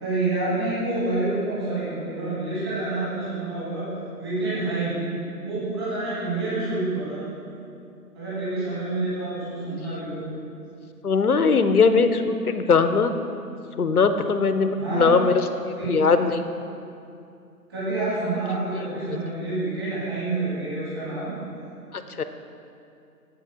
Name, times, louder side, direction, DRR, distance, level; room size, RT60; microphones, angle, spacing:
voice 1, 0.0-3.9 4.2-5.0 5.4-7.2 8.1-10.3 14.7-15.1 15.7-16.0 17.7-21.3, right 2 dB, 15° right, -11 dB, 2.1 m, -28 dB
voice 2, 11.0-13.1 13.8-15.5 15.8-16.4 19.1-19.2 22.2-22.3, left 4 dB, 65° left, 10 dB, 0.6 m, -20 dB
7.6 x 7.6 x 5.0 m, 2.6 s
figure-of-eight pair, 155°, 49 cm